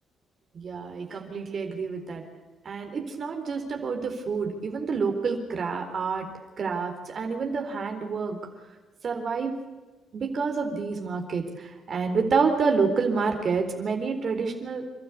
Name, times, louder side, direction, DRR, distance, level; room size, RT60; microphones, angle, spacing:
voice 1, 0.5-2.2 2.6-6.3 6.6-8.4 9.0-9.5 10.1-14.8, right 5 dB, 50° right, 4 dB, 4.0 m, -28 dB
29.0 x 12.5 x 8.4 m, 1.3 s
cardioid pair, 90°, 0 cm